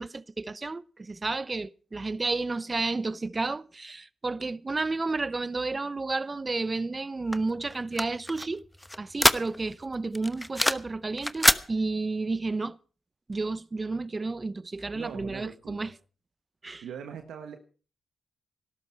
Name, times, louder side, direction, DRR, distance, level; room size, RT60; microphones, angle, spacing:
voice 1, 0.0-8.6 9.0-12.8 13.3-15.9 16.6-16.8, right 3 dB, 35° right, 0.8 m, -31 dB
sound 1, 7.3-9.8 10.2-10.9 11.2-11.6, left 1 dB, 10° left, 1.0 m, -25 dB
voice 2, 14.9-15.9 16.8-17.6, right 7 dB, 75° right, 1.4 m, -41 dB
18.5 x 12.5 x 4.6 m
hypercardioid pair, 45°, 0 cm